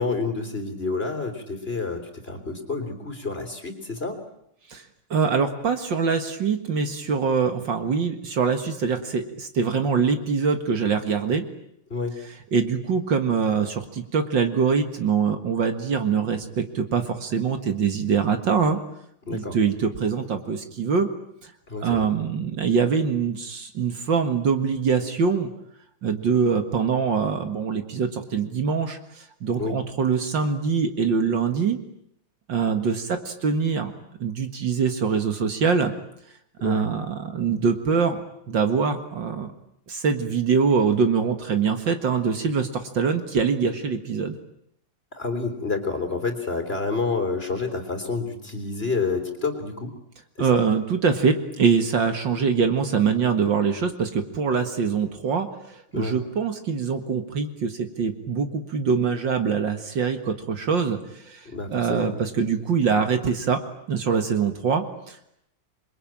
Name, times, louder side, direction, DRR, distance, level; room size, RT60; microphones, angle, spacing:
voice 1, 0.0-4.2 11.9-12.1 19.3-19.6 21.7-22.1 29.5-29.8 36.6-36.9 45.1-49.9 50.4-50.6 55.9-56.2 61.5-62.2, left 4 dB, 25° left, 7 dB, 3.7 m, -29 dB
voice 2, 5.1-11.4 12.5-18.8 19.3-21.1 21.4-21.5 21.8-25.5 26.0-31.8 32.5-33.9 34.2-35.9 36.6-39.5 39.9-44.4 50.4-63.6 63.9-65.3, right 5 dB, 60° right, 7 dB, 2.4 m, -24 dB
27.5 x 22.5 x 8.9 m, 0.76 s
omnidirectional pair, 2.3 m